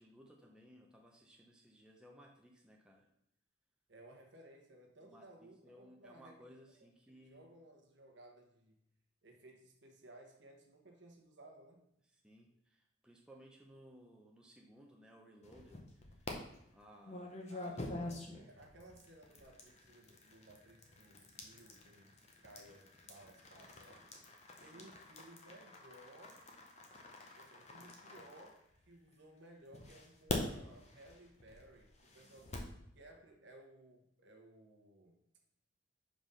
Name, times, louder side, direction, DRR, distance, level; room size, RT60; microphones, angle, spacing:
voice 1, 0.0-3.1 5.0-7.5 12.1-16.3 16.7-18.0 24.6-24.9, equal, 5° right, -1 dB, 0.5 m, -60 dB
voice 2, 3.9-6.5 7.1-8.8 9.2-11.9 17.5-24.1 24.6-26.5 27.4-32.6 32.9-35.2, right 1 dB, 60° right, 2 dB, 1.1 m, -59 dB
sound 1, 15.4-16.3 17.0-29.1 29.7-32.8, left 2 dB, 35° left, 0.8 m, -47 dB
5.0 x 3.8 x 5.5 m, 0.77 s
head